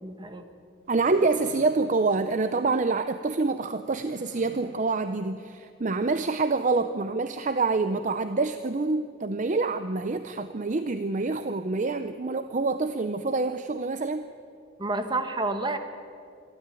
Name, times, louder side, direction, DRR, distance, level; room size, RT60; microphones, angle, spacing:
voice 1, 0.0-0.5 14.8-15.8, right 2 dB, 25° right, 7 dB, 1.5 m, -29 dB
sound 1, 0.8-3.0 3.8-6.0, equal, 75° right, 6.7 m, -53 dB
voice 2, 0.9-14.3, right 3 dB, 40° right, 10 dB, 0.6 m, -26 dB
25.5 x 13.0 x 9.1 m, 2.3 s
head